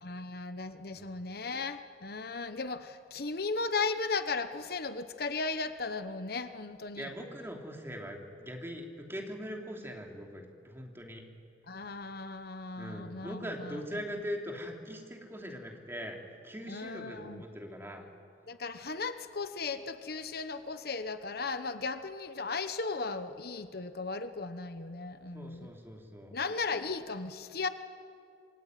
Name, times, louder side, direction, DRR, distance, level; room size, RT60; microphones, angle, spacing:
voice 1, 0.0-7.1 11.7-14.0 16.7-17.4 18.5-25.7 26.3-27.7, left 4 dB, 60° left, 10 dB, 1.1 m, -36 dB
voice 2, 7.0-11.2 12.8-16.2 16.4-18.1 25.3-26.3, equal, 15° right, 1 dB, 3.2 m, -41 dB
27.0 x 23.0 x 9.3 m, 2.4 s
head